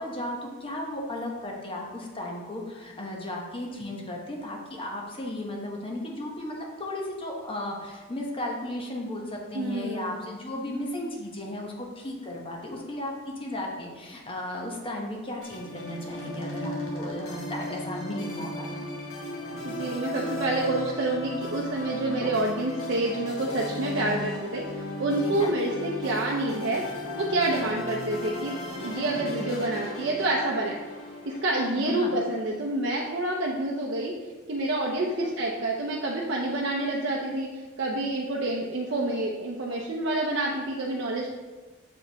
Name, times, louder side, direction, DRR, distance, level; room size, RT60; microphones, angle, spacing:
voice 1, 0.0-18.7 22.0-22.3 25.2-25.5 29.0-29.3 31.8-32.1 35.2-35.3, left 1 dB, 25° left, 0 dB, 1.0 m, -35 dB
voice 2, 9.5-10.2 19.6-26.8 27.2-30.8 31.2-34.1 34.5-41.3, right 2 dB, 60° right, -3 dB, 0.6 m, -28 dB
sound 1, 15.4-32.8, left 1 dB, 90° left, 1.5 m, -36 dB
7.1 x 4.6 x 3.4 m, 1.3 s
head